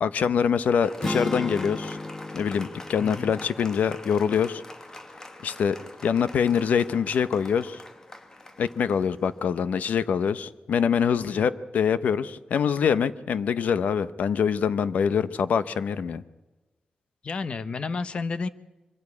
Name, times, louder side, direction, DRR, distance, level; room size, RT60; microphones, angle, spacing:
voice 1, 0.0-2.0 2.3-4.6 5.4-7.8 8.6-16.2, left 7 dB, 80° left, 14 dB, 0.8 m, -24 dB
Applause, 0.8-9.8, left 2 dB, 25° left, 1.3 m, -45 dB
sound 1, 1.0-5.2, left 1 dB, 10° left, 0.8 m, -35 dB
voice 2, 3.0-3.3 11.2-11.5 17.2-18.5, left 4 dB, 45° left, 14 dB, 0.8 m, -31 dB
24.0 x 15.5 x 8.5 m, 1.2 s
wide cardioid pair, 145°, 3 cm